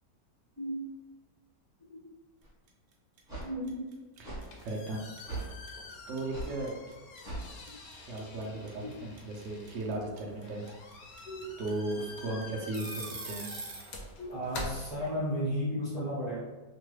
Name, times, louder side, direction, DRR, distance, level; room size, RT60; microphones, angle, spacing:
voice 1, 0.6-0.9 1.9-2.0 3.4-3.9 7.7-7.8 11.2-11.6 14.2-16.4, equal, 35° right, -10 dB, 0.8 m, -34 dB
sound 1, 2.4-2.5 3.3-3.5 4.2-4.4 5.3-5.5 6.3-6.5 7.2-7.5, right 2 dB, 5° right, 0.9 m, -38 dB
sound 2, 2.7-2.9 3.2-13.9, right 3 dB, 70° right, 0.9 m, -44 dB
sound 3, 4.1-15.6, left 2 dB, 70° left, 0.8 m, -47 dB
voice 2, 4.2-5.0 6.1-6.7 8.0-10.6 11.1-11.2 11.6-13.5, right 2 dB, 85° right, -1 dB, 0.6 m, -36 dB
3.0 x 2.2 x 3.1 m, 1.2 s
omnidirectional pair, 1.9 m